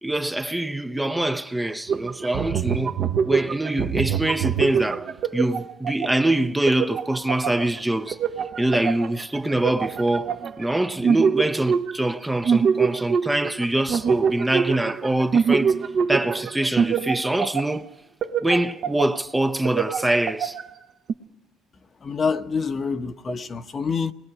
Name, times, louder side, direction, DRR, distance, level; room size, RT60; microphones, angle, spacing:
voice 1, 0.0-3.0 3.2-8.2 8.6-15.8 16.1-17.9 18.4-20.6, right 1 dB, 10° right, 0.7 m, -24 dB
sound 1, 1.9-6.2 6.7-10.7 11.0-12.2 12.4-17.8 18.2-19.3 19.7-20.7 21.1-21.2, right 6 dB, 50° right, 1.1 m, -25 dB
voice 2, 22.0-24.1, left 5 dB, 35° left, 1.0 m, -26 dB
29.5 x 20.5 x 4.9 m
supercardioid pair, 80°, 0 cm